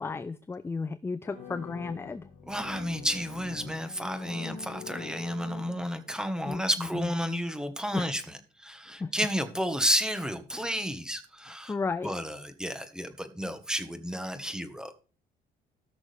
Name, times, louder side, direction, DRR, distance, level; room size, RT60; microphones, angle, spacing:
voice 1, 0.0-2.3 6.5-7.1 7.9-8.1 8.8-9.1 10.5-10.7 11.4-12.1, left 4 dB, 15° left, 13 dB, 0.4 m, -34 dB
sound 1, 1.2-6.2, left 6 dB, 50° left, 2.2 m, -45 dB
voice 2, 2.5-8.2 8.6-11.7 12.0-14.9, equal, 5° right, 9 dB, 1.3 m, -31 dB
18.0 x 6.2 x 3.4 m, 0.36 s
cardioid pair, 110°, 17 cm